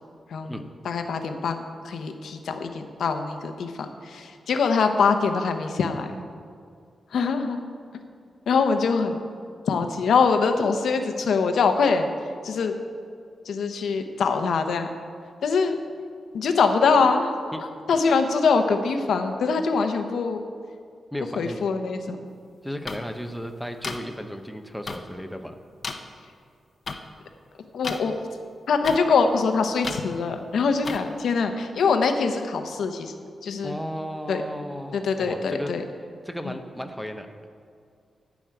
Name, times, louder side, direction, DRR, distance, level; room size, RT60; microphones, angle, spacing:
voice 1, 0.3-6.1 7.1-7.6 8.5-9.2 9.7-12.1 12.4-12.7 13.4-14.9 15.4-15.8 16.3-17.4 17.9-20.4 21.4-22.2 27.7-28.1 28.7-33.1 33.4-33.8 34.3-34.4 34.9-35.8 36.4-36.5, left 5 dB, 80° left, 6 dB, 0.9 m, -23 dB
voice 2, 21.1-21.6 22.6-25.5 33.6-35.7 36.2-37.5, equal, ahead, 6 dB, 0.7 m, -34 dB
sound 1, 22.9-23.0 23.8-24.0 24.9-25.0 25.8-25.9 26.9-27.0 27.8-28.0 28.8-29.0 29.8-30.0 30.8-31.0, left 4 dB, 40° left, 0.7 m, -31 dB
10.5 x 6.2 x 9.0 m, 2.3 s
wide cardioid pair, 170°, 0 cm